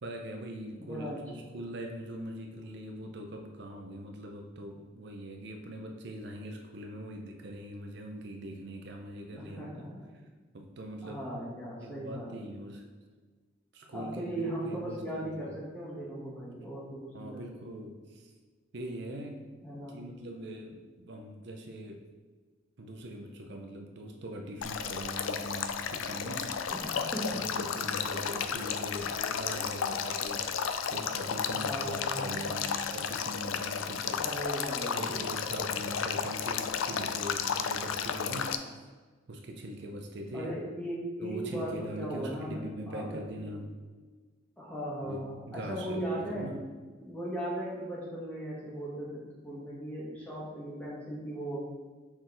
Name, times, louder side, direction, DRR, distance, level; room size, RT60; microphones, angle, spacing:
voice 1, 0.0-9.6 10.5-11.3 11.8-12.8 13.7-15.5 17.1-18.3 18.7-19.5 19.9-22.0 22.8-26.8 27.2-34.3 34.9-38.7 39.3-40.6 41.2-43.7 45.0-45.2 45.5-46.6, right 1 dB, 60° right, 3 dB, 0.6 m, -42 dB
voice 2, 0.8-1.4 9.3-10.1 11.0-12.3 13.9-17.4 19.6-20.0 26.7-27.3 31.5-32.7 34.1-35.1 40.3-42.6 42.9-43.2 43.5-43.6 44.6-46.5 47.0-51.6, right 1 dB, 10° left, -6 dB, 1.6 m, -38 dB
Male speech man speaking / Stream / Trickle dribble, 24.6-38.6, left 7 dB, 90° left, 0.4 m, -33 dB
6.0 x 4.3 x 3.9 m, 1.4 s
head